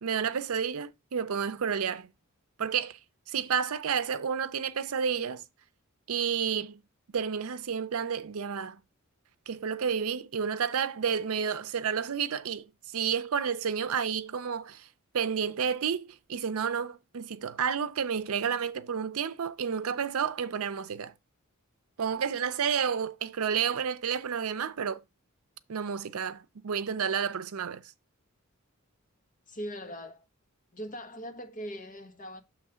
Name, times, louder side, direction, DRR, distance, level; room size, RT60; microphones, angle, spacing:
voice 1, 0.0-2.1 2.6-3.0 3.3-5.4 6.1-6.8 7.1-8.8 9.5-12.7 12.9-14.9 15.1-21.1 22.0-25.0 25.7-27.8, right 7 dB, 75° right, 0.5 m, -30 dB
voice 2, 29.5-30.3 30.7-32.4, equal, 40° left, 1.2 m, -40 dB
7.3 x 3.1 x 4.9 m
head